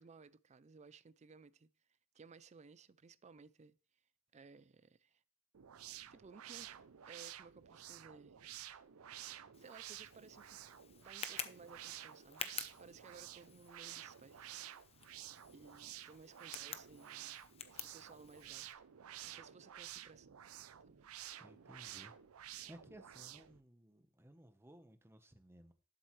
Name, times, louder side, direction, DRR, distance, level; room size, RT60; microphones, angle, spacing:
voice 1, 0.0-1.7 2.1-3.8 4.3-5.2 6.1-6.7 7.1-8.5 9.6-10.6 11.0-12.5 12.8-14.6 15.5-17.4 17.8-18.7 19.2-20.4 20.8-21.1, right 4 dB, 30° right, 0.4 m, -59 dB
sound 1, 5.5-23.6, right 12 dB, 80° right, 0.5 m, -52 dB
Tick, 9.5-18.7, left 7 dB, 30° left, 0.8 m, -51 dB
voice 2, 21.4-22.1 22.7-25.7, right 1 dB, 10° right, 1.1 m, -59 dB
12.0 x 7.9 x 3.2 m
head